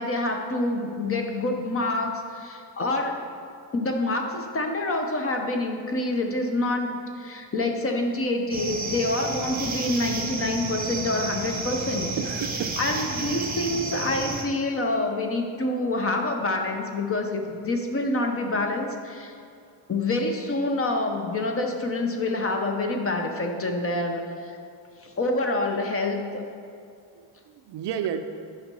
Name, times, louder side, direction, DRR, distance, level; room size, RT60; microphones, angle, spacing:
voice 1, 0.0-3.2 3.7-12.1 12.8-19.3 19.9-24.2 25.0-26.4, left 2 dB, 30° left, 3 dB, 0.6 m, -27 dB
sound 1, 8.5-14.4, right 3 dB, 20° right, 0.8 m, -31 dB
voice 2, 12.2-12.8 27.1-28.2, right 9 dB, 55° right, 8 dB, 0.5 m, -31 dB
9.0 x 5.5 x 5.3 m, 2.4 s
cardioid pair, 180°, 50 cm